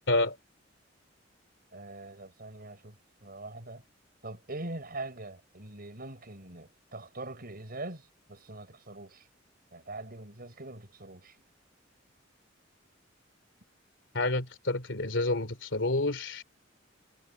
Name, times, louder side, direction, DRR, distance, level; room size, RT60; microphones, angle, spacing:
voice 1, 1.7-3.0 3.2-3.8 4.2-9.3 9.7-11.4, right 2 dB, 50° right, 6.3 m, -43 dB
voice 2, 14.1-16.4, left 2 dB, 70° left, 3.1 m, -29 dB
head